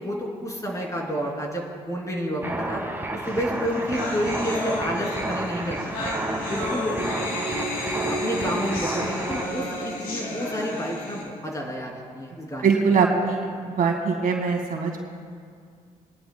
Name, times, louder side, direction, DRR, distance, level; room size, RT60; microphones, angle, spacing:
voice 1, 0.0-2.8 3.1-6.1 6.5-7.0 8.1-12.7, equal, 20° left, -1 dB, 3.0 m, -30 dB
sound 1, 2.4-9.5, right 1 dB, 15° right, 1.7 m, -31 dB
sound 2, 3.4-3.5 3.6-11.2, left 1 dB, 85° left, 2.6 m, -31 dB
voice 2, 12.6-15.0, right 5 dB, 65° right, 0 dB, 2.0 m, -22 dB
24.5 x 11.0 x 2.2 m, 2.1 s
supercardioid pair, 60°, 15 cm